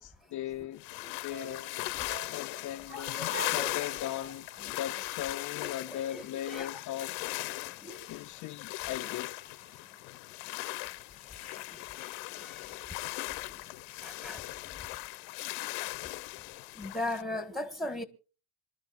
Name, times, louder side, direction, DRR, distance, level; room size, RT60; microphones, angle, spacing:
voice 1, 0.0-1.8 2.3-7.2 8.1-9.4, left 12 dB, 40° left, 0.6 m, -39 dB
sound 1, 0.8-17.2, left 24 dB, 75° left, 0.9 m, -38 dB
sound 2, 1.3-5.7 6.0-6.1, right 5 dB, 25° right, 1.5 m, -48 dB
voice 2, 2.9-3.8 4.6-4.8 5.6-6.8 7.6-8.2 8.9-9.1 9.8-10.0 10.4-14.4 14.8-15.0 16.0-16.1 16.4-16.5 16.7-18.0, left 1 dB, ahead, 1.5 m, -41 dB
26.5 x 12.5 x 2.5 m
cardioid pair, 130°, 46 cm